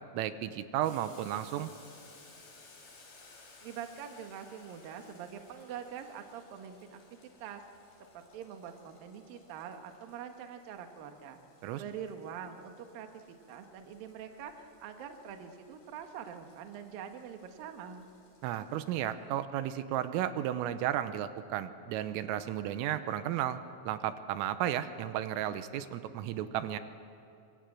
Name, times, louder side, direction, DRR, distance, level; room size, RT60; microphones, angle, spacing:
voice 1, 0.1-1.7 11.6-11.8 18.4-26.8, right 11 dB, 80° right, 11 dB, 3.5 m, -33 dB
Boiling, 0.8-19.2, left 3 dB, 60° left, 7.0 m, -59 dB
voice 2, 3.4-7.0 7.4-7.6 8.1-11.4 11.8-13.2 13.5-18.0, right 8 dB, 65° right, 5 dB, 2.5 m, -44 dB
26.0 x 25.5 x 7.8 m, 2.7 s
omnidirectional pair, 6.0 m